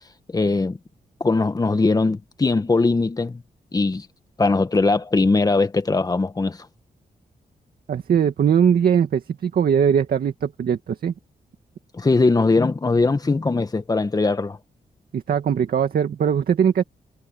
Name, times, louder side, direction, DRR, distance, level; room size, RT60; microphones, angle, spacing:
voice 1, 0.3-0.8 1.2-3.4 3.7-4.1 4.4-6.6 11.9-14.6, left 3 dB, 25° left, 1.3 m, -20 dB
voice 2, 7.9-11.1 15.1-16.8, right 8 dB, 70° right, 2.0 m, -20 dB
wide cardioid pair, 120°, 16 cm